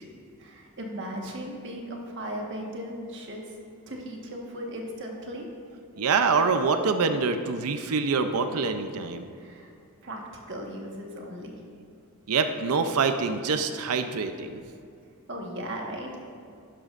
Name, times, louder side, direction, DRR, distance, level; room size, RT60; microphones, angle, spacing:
voice 1, 0.4-3.4 3.9-5.5 9.4-9.7 10.0-10.2 10.5-11.6 15.3-16.1, equal, 55° right, 0 dB, 1.4 m, -37 dB
voice 2, 6.0-9.3 12.3-14.6, right 4 dB, 80° right, 8 dB, 0.5 m, -25 dB
11.5 x 11.0 x 2.5 m, 2.3 s
head